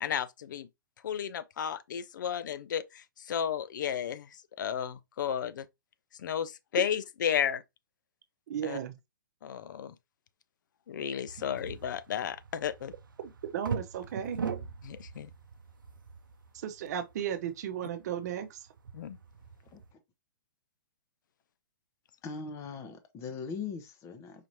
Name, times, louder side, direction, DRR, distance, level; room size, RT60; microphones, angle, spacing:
voice 1, 0.0-0.7 1.0-4.3 4.6-5.7 6.2-7.6 8.6-8.8 9.4-9.9 10.9-12.9 14.8-15.3 18.9-19.2, left 8 dB, 70° left, 0.5 m, -33 dB
voice 2, 8.5-8.9 13.2-14.4 16.5-18.6, right 9 dB, 55° right, 0.8 m, -35 dB
sound 1, 11.3-19.9, right 6 dB, 85° right, 0.6 m, -42 dB
voice 3, 22.2-24.5, left 5 dB, 25° left, 0.8 m, -40 dB
4.9 x 2.9 x 2.7 m
hypercardioid pair, 125°, 11 cm